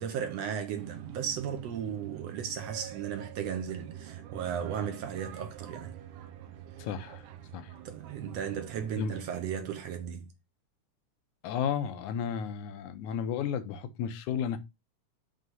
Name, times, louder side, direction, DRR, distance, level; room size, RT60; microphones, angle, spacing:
voice 1, 0.0-5.9 7.8-10.3, right 8 dB, 70° right, 1.7 m, -35 dB
sound 1, 0.7-8.9, right 11 dB, 90° right, 2.4 m, -45 dB
voice 2, 6.8-7.2 7.5-7.7 9.0-9.1 11.4-14.6, left 8 dB, 75° left, 2.1 m, -33 dB
6.4 x 3.2 x 5.3 m
omnidirectional pair, 3.6 m